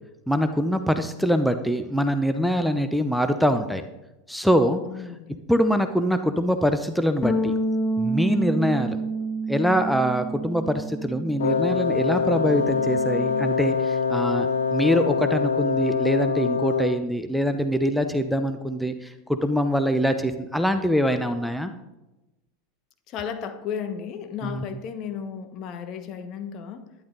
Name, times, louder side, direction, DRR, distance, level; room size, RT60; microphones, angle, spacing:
voice 1, 0.3-3.8 4.3-4.8 5.1-5.2 5.5-7.5 8.0-9.0 9.5-21.7 24.4-24.6, equal, ahead, 8 dB, 0.8 m, -24 dB
voice 2, 4.9-5.4 8.7-8.9 23.1-26.9, left 7 dB, 45° left, 8 dB, 1.3 m, -34 dB
sound 1, 7.2-11.8 12.1-13.5, right 2 dB, 20° left, 1.7 m, -29 dB
Wind instrument woodwind instrument, 11.4-17.1, left 6 dB, 75° left, 0.7 m, -24 dB
12.0 x 10.5 x 3.9 m, 0.99 s
hypercardioid pair, 90°, 0 cm